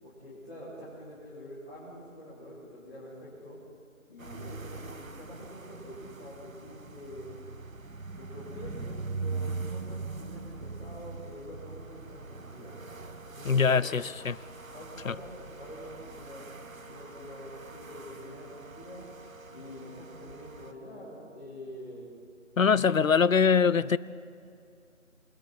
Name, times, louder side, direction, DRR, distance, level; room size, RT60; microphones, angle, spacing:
voice 1, 0.0-3.6 4.1-7.3 8.2-12.7 13.2-13.8 14.6-16.4 16.9-19.0 19.5-22.1, equal, 5° left, 2.4 m, -46 dB
sound 1, 4.2-20.7, right 4 dB, 70° right, 1.5 m, -42 dB
Brass instrument, 12.6-21.5, right 2 dB, 20° right, 4.8 m, -53 dB
voice 2, 13.4-14.4 15.0-15.1 22.6-24.0, left 6 dB, 70° left, 0.7 m, -23 dB
27.5 x 21.5 x 4.5 m
figure-of-eight pair, 170°, 42 cm